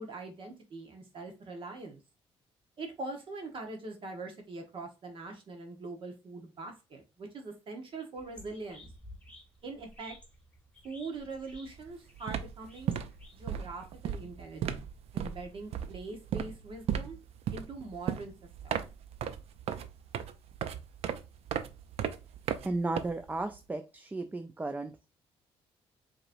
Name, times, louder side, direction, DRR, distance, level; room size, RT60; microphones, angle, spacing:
voice 1, 0.0-2.0 2.8-8.9 9.6-10.2 10.8-12.9 13.3-14.9 15.1-17.2 17.5-18.3 18.6-18.8, right 3 dB, 50° right, 3 dB, 1.2 m, -42 dB
sound 1, 8.2-13.9, left 1 dB, 10° left, 1.3 m, -53 dB
sound 2, 11.7-11.9 12.1-23.6, right 9 dB, 70° right, 0.5 m, -36 dB
voice 2, 22.6-25.1, right 2 dB, 15° right, 7 dB, 0.4 m, -34 dB
4.9 x 3.0 x 2.6 m, 0.28 s
cardioid pair, 95°, 11 cm